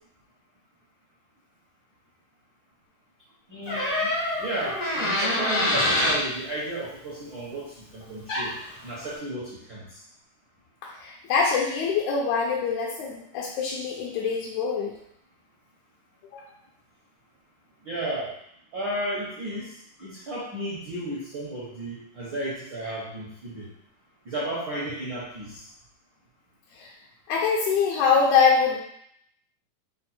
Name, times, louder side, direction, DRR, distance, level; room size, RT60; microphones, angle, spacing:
voice 1, 3.5-4.1 4.4-8.5 8.8-10.0 17.8-18.3 18.7-19.7 20.0-23.7 24.2-25.7, right 1 dB, 65° right, -6 dB, 1.1 m, -33 dB
Door, 3.7-6.2 8.0-8.1 8.3-8.7, left 1 dB, 60° left, 0.8 m, -25 dB
voice 2, 11.0-14.9 16.3-16.4 26.8-26.9 27.3-28.8, left 5 dB, 75° left, -3 dB, 1.8 m, -24 dB
5.2 x 2.1 x 4.2 m, 0.72 s
omnidirectional pair, 3.6 m